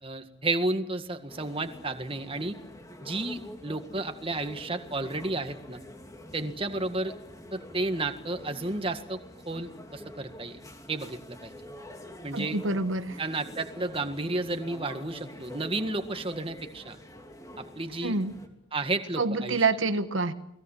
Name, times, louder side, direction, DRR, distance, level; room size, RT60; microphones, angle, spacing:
voice 1, 0.0-2.6 3.0-5.8 6.3-7.1 7.5-10.6 10.9-11.5 12.2-12.6 13.2-17.0 17.6-18.2 18.7-19.6, right 2 dB, 25° right, 7 dB, 1.8 m, -32 dB
sound 1, 1.3-18.5, left 1 dB, 15° left, 3.0 m, -47 dB
voice 2, 12.3-13.2 18.0-18.3 19.2-20.3, right 3 dB, 80° right, 9 dB, 1.4 m, -27 dB
30.0 x 20.5 x 7.4 m, 0.80 s
head